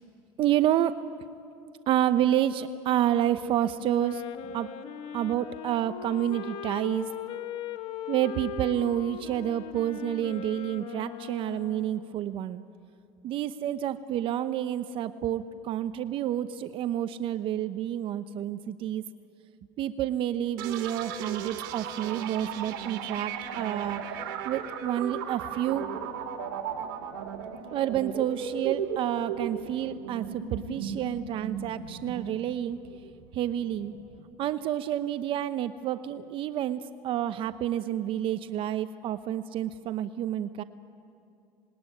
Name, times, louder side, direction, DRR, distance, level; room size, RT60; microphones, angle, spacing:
voice 1, 0.4-1.0 1.9-4.2 4.5-4.7 5.1-7.1 8.1-12.6 13.2-19.0 19.8-24.2 24.4-25.9 27.7-32.8 33.3-33.9 34.4-40.6, right 11 dB, 50° right, 11 dB, 0.9 m, -29 dB
Wind instrument woodwind instrument, 3.8-12.2, left 9 dB, 60° left, 1.5 m, -40 dB
sound 1, 20.6-34.2, right 8 dB, 85° right, 2.8 m, -36 dB
26.0 x 21.0 x 9.8 m, 2.5 s
supercardioid pair, 115°, 11 cm